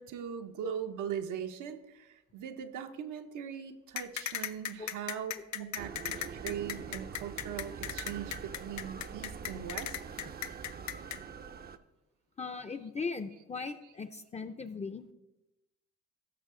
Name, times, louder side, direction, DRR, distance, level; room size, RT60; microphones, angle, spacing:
voice 1, 0.0-5.9 6.3-10.0, right 9 dB, 80° right, 7 dB, 0.9 m, -40 dB
sound 1, 4.0-11.2, left 11 dB, 65° left, 0.6 m, -37 dB
sound 2, 5.8-11.8, right 6 dB, 30° right, 0.5 m, -44 dB
voice 2, 12.4-15.0, left 4 dB, 25° left, 9 dB, 0.5 m, -38 dB
14.0 x 6.0 x 3.7 m, 1.0 s
cardioid pair, 90°, 30 cm